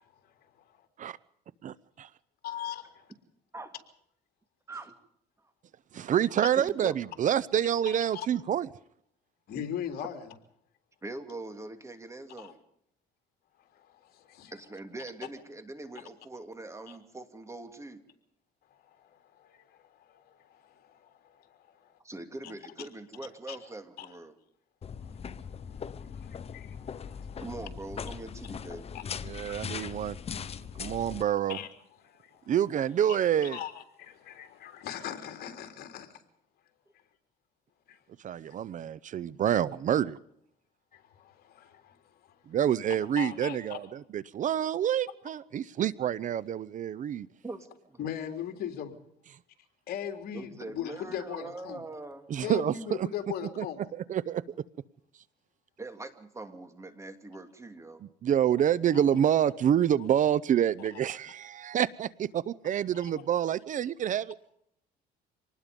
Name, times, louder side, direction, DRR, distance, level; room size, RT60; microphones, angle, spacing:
voice 1, 1.6-2.1 5.9-8.7 29.2-30.2 30.8-31.6 32.5-33.6 38.2-40.2 42.5-47.3 52.3-53.1 53.6-53.7 54.1-54.4 58.2-64.4, right 10 dB, 50° right, 19 dB, 0.7 m, -27 dB
voice 2, 2.4-2.8 7.9-8.3 9.5-10.2 12.4-12.5 13.7-14.5 16.9-17.0 19.0-21.6 21.8-21.9 22.4-22.5 23.5-23.6 24.0-24.1 25.0-27.4 28.9-29.6 30.5-31.0 31.5-31.7 32.0-32.6 33.4-36.1 37.9-38.0 40.9-42.0 42.2-42.4 43.2-43.8 48.0-48.9 49.9-51.8 52.4-53.9 60.0-60.1 60.8-60.9 63.0-63.1, left 9 dB, 65° left, 5 dB, 3.6 m, -40 dB
voice 3, 6.6-7.0 11.0-12.6 14.5-18.0 22.0-24.3 27.4-28.9 47.4-48.0 50.3-52.3 55.8-58.0, right 2 dB, 15° right, 7 dB, 2.9 m, -42 dB
sound 1, 24.8-31.2, left 7 dB, 35° left, 1.1 m, -40 dB
26.0 x 19.5 x 5.3 m, 0.71 s
cardioid pair, 110°, 17 cm